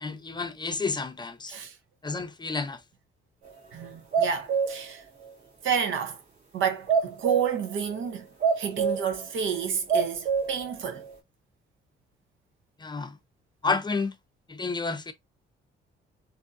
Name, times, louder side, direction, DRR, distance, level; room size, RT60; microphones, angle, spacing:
voice 1, 0.0-1.5 2.0-2.8 12.8-13.2 13.6-14.2 14.5-15.1, left 4 dB, 20° left, 0.6 m, -30 dB
voice 2, 3.7-5.0 5.6-6.2 6.5-8.3 8.6-11.1, right 7 dB, 75° right, 0.9 m, -30 dB
sound 1, 3.8-4.8 5.2-5.3 6.9-7.6 8.4-9.2 9.5-9.6 9.9-10.7 11.0-11.1, right 6 dB, 40° right, 2.2 m, -26 dB
3.6 x 2.6 x 2.6 m
cardioid pair, 90°, 20 cm